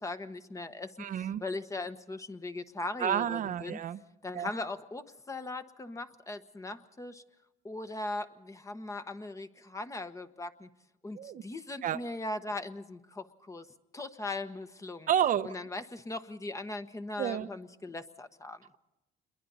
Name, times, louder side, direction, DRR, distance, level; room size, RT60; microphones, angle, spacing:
voice 1, 0.0-3.8 4.2-7.2 7.6-10.7 11.0-13.7 13.9-15.1 15.4-18.6, left 2 dB, 20° left, 9 dB, 1.2 m, -39 dB
voice 2, 1.0-1.4 3.0-4.0 4.3-4.5 11.1-11.4 11.8-12.0 15.1-15.5 17.2-17.5, right 10 dB, 55° right, 11 dB, 0.8 m, -30 dB
28.0 x 22.5 x 4.1 m, 0.98 s
cardioid pair, 110°, 17 cm